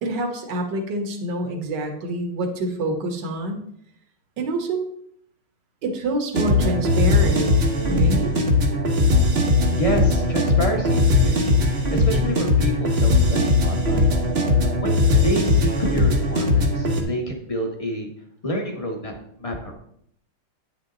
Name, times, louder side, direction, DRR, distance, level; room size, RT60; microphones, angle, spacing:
voice 1, 0.0-3.6 4.4-4.9 5.8-7.6 7.9-8.3, right 1 dB, 55° right, 4 dB, 1.9 m, -26 dB
sound 1, 6.3-17.0, left 2 dB, 35° right, 1.1 m, -19 dB
voice 2, 9.7-14.1 14.8-18.1 18.4-19.7, equal, 20° left, 2 dB, 1.2 m, -28 dB
9.6 x 7.2 x 3.9 m, 0.68 s
omnidirectional pair, 2.4 m